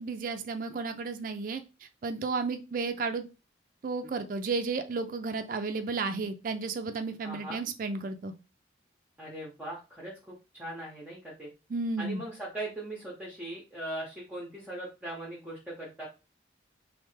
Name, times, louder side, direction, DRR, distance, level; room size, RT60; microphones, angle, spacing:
voice 1, 0.0-1.6 2.0-3.3 3.8-8.3 11.7-12.2, right 4 dB, 45° right, 8 dB, 0.3 m, -33 dB
voice 2, 7.2-7.6 9.2-11.5 12.0-16.1, right 1 dB, 5° right, -4 dB, 0.6 m, -40 dB
3.2 x 2.1 x 3.1 m, 0.28 s
head